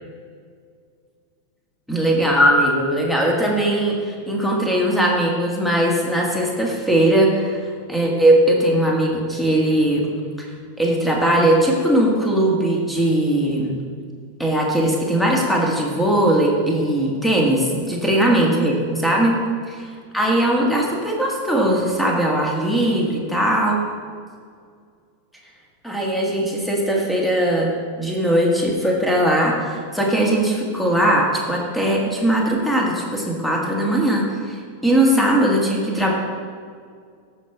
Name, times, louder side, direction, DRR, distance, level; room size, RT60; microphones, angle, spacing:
voice 1, 1.9-7.6 7.9-10.1 10.4-10.5 10.8-13.8 14.4-19.4 20.1-23.8 25.8-36.1, right 1 dB, 5° left, -1 dB, 1.7 m, -19 dB
13.5 x 5.4 x 3.5 m, 2.1 s
figure-of-eight pair, 90°, 0 cm